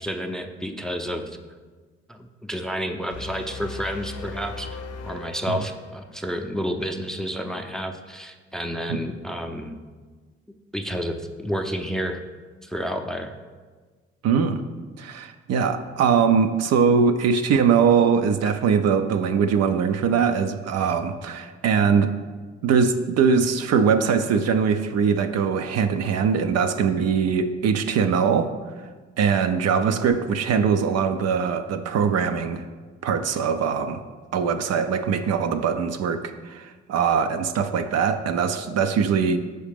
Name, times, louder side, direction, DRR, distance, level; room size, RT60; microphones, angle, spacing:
voice 1, 0.0-1.4 2.1-9.7 10.7-12.2 12.6-13.3, equal, ahead, 5 dB, 0.5 m, -30 dB
sound 1, 3.1-6.3, left 4 dB, 55° left, 0.6 m, -38 dB
voice 2, 14.2-14.6 15.0-22.1 22.6-28.5 29.2-32.6 33.0-34.0 34.3-39.4, right 6 dB, 55° right, 8 dB, 0.5 m, -22 dB
6.4 x 4.7 x 3.4 m, 1.4 s
hypercardioid pair, 50°, 31 cm